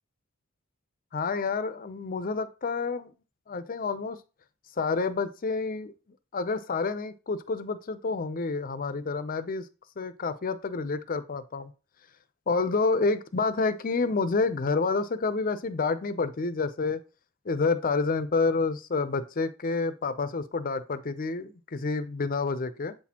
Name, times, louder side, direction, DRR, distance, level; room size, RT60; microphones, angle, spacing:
voice 1, 1.1-3.1 3.5-4.2 4.8-5.9 6.3-9.7 10.0-11.7 12.5-17.0 17.4-23.0, left 4 dB, 40° left, 0.5 m, -28 dB
7.8 x 4.2 x 2.9 m
head